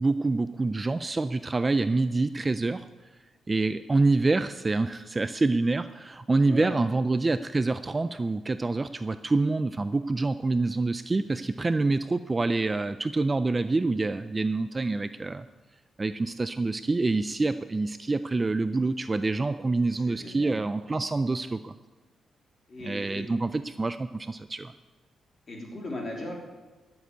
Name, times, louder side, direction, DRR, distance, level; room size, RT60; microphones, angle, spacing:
voice 1, 0.0-2.8 3.5-15.5 16.0-21.7 22.8-24.7, right 3 dB, 20° right, 12 dB, 0.3 m, -26 dB
voice 2, 19.9-20.7 22.7-23.3 25.5-26.3, left 1 dB, 30° left, 0 dB, 3.2 m, -38 dB
12.5 x 7.3 x 9.2 m, 1.3 s
wide cardioid pair, 160°, 0 cm